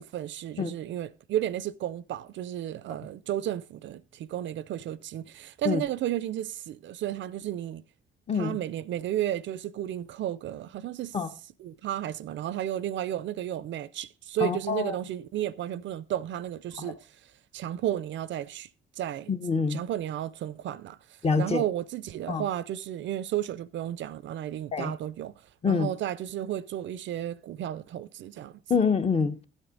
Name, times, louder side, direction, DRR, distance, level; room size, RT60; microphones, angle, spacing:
voice 1, 0.0-7.8 8.3-11.2 11.6-17.0 17.5-18.7 19.0-19.3 19.7-21.0 21.4-25.3 25.6-28.6, right 11 dB, 70° right, 0.5 m, -33 dB
voice 2, 14.4-14.9 16.8-16.9 19.3-19.8 21.2-21.6 22.3-22.4 24.7-24.9 25.6-25.9 28.7-29.4, left 5 dB, 30° left, 1.0 m, -26 dB
12.5 x 8.0 x 3.8 m
cardioid pair, 90°, 20 cm